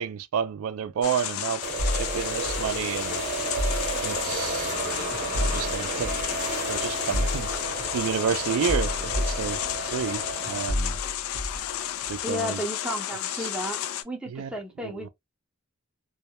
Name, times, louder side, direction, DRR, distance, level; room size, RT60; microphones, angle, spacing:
voice 1, 0.0-1.6 1.9-3.2 4.0-6.1 6.7-9.6 9.9-11.0 12.1-12.6 13.4-13.5 14.3-15.1, right 7 dB, 90° right, 0.3 m, -31 dB
sound 1, 1.0-14.0, left 11 dB, 90° left, 0.3 m, -32 dB
sound 2, 1.6-10.7, right 3 dB, 40° right, 0.8 m, -33 dB
sound 3, 1.8-10.2 10.5-12.4, left 1 dB, 55° left, 0.9 m, -32 dB
voice 2, 12.2-13.8 14.0-15.1, left 1 dB, 5° right, 0.5 m, -33 dB
2.2 x 2.1 x 2.7 m
head